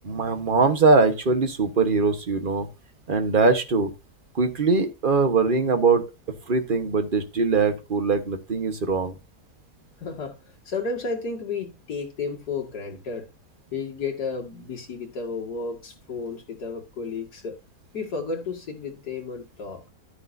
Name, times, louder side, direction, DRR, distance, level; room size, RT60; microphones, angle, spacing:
voice 1, 0.0-2.7 3.1-3.9 4.3-6.0 6.5-9.1, right 4 dB, 35° right, 1.4 m, -21 dB
voice 2, 10.0-10.3 10.7-13.3 13.7-17.6 17.9-19.8, left 4 dB, 85° left, 2.6 m, -32 dB
12.0 x 9.9 x 2.7 m
omnidirectional pair, 1.7 m